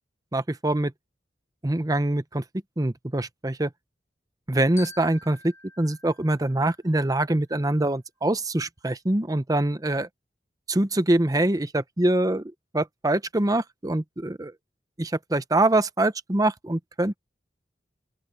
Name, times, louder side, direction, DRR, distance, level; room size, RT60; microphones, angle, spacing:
voice 1, 0.3-0.9 1.6-2.4 2.8-3.7 4.5-10.1 10.7-14.5 15.0-17.2, right 1 dB, 20° right, 0.8 m, -24 dB
Glockenspiel, 4.8-7.2, left 4 dB, 15° left, 2.7 m, -47 dB
open air
head